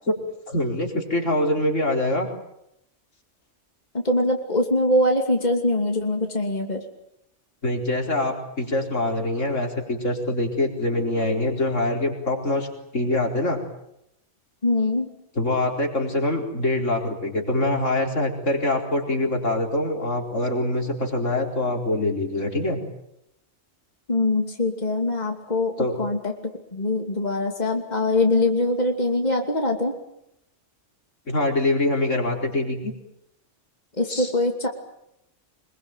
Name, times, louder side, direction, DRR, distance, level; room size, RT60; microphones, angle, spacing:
voice 1, 0.5-2.3 7.6-12.7 12.9-13.6 15.4-22.8 25.8-26.0 31.3-32.9 34.1-34.3, left 2 dB, 85° left, 2 dB, 4.7 m, -24 dB
voice 2, 3.9-6.8 14.6-15.1 24.1-25.7 26.0-26.3 26.7-30.0 34.0-34.7, left 2 dB, 35° left, 3 dB, 2.9 m, -23 dB
25.0 x 22.0 x 9.2 m, 0.79 s
omnidirectional pair, 1.2 m